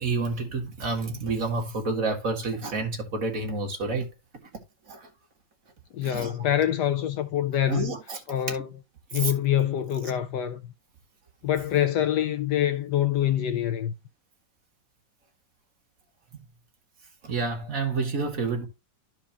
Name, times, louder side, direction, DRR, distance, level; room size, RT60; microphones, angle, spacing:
voice 1, 0.0-4.1 4.9-5.1 6.0-6.3 7.7-8.2 9.1-9.3 10.1-10.2 17.2-18.7, right 3 dB, 45° right, 2.0 m, -29 dB
voice 2, 5.9-7.9 8.3-8.7 9.1-10.7 11.4-13.9, left 11 dB, 70° left, 1.1 m, -25 dB
13.0 x 4.6 x 2.9 m
omnidirectional pair, 2.1 m